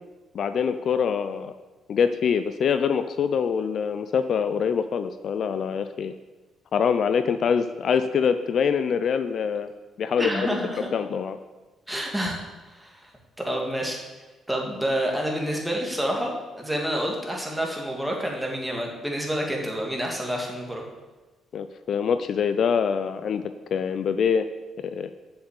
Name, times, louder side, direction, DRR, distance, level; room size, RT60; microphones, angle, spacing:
voice 1, 0.3-1.5 1.9-6.1 6.7-9.7 10.0-10.5 10.8-11.4 21.5-24.5 24.8-25.1, left 6 dB, 55° left, 10 dB, 0.5 m, -24 dB
voice 2, 10.2-10.9 11.9-13.1 13.4-14.0 14.5-16.3 16.6-20.8, equal, 5° right, -1 dB, 2.5 m, -28 dB
7.6 x 7.0 x 8.3 m, 1.2 s
cardioid pair, 105°, 0 cm